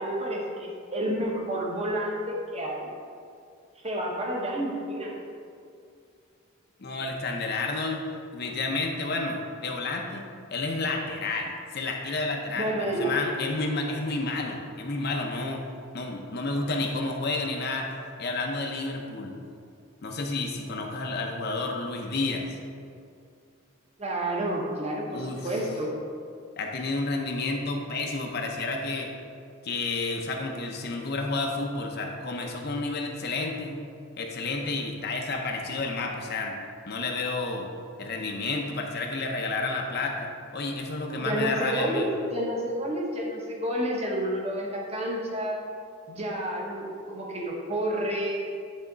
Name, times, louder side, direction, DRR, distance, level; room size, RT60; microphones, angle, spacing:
voice 1, 0.0-2.9 3.8-5.1 12.6-13.1 24.0-25.9 41.2-45.6 46.1-48.4, right 1 dB, 30° right, -2 dB, 1.1 m, -30 dB
voice 2, 6.8-8.0 8.3-10.2 10.5-15.6 15.9-17.9 18.2-19.3 20.0-22.6 25.1-25.6 26.6-29.1 29.6-33.8 34.2-36.6 36.9-37.7 38.0-42.1, left 3 dB, 50° left, 2 dB, 0.6 m, -30 dB
9.8 x 3.5 x 3.9 m, 2.3 s
head